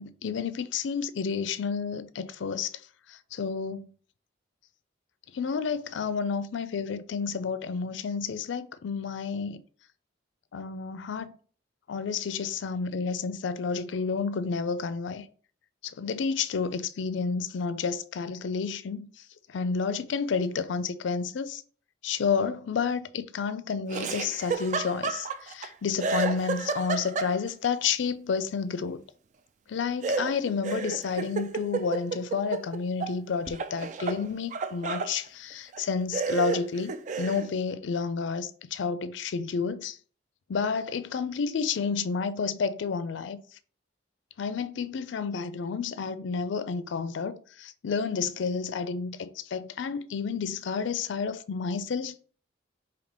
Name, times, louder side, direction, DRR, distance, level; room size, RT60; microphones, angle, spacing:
voice 1, 0.0-2.8 3.1-3.9 5.3-9.6 10.5-11.3 11.9-15.3 15.8-21.6 22.0-29.0 29.7-36.9 37.2-40.0 40.5-43.4 44.4-52.2, left 5 dB, 70° left, 0.4 m, -30 dB
Laughter, 23.9-25.7 26.0-27.7 30.0-33.1 33.5-35.1 35.7-35.8 36.1-37.5, right 4 dB, 40° right, 0.3 m, -31 dB
5.2 x 2.8 x 3.3 m
head